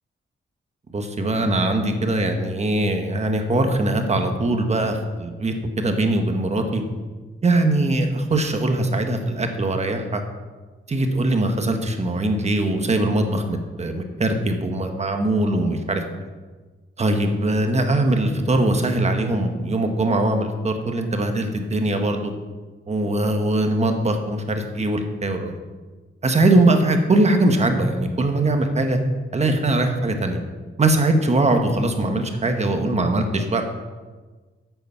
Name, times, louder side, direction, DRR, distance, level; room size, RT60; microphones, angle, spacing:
voice 1, 0.9-6.8 7.4-10.2 10.9-16.0 17.0-22.3 22.9-25.6 26.2-29.0 29.3-30.4 30.8-33.6, right 2 dB, 30° right, 5 dB, 1.1 m, -21 dB
8.9 x 8.1 x 5.6 m, 1.3 s
wide cardioid pair, 145°, 21 cm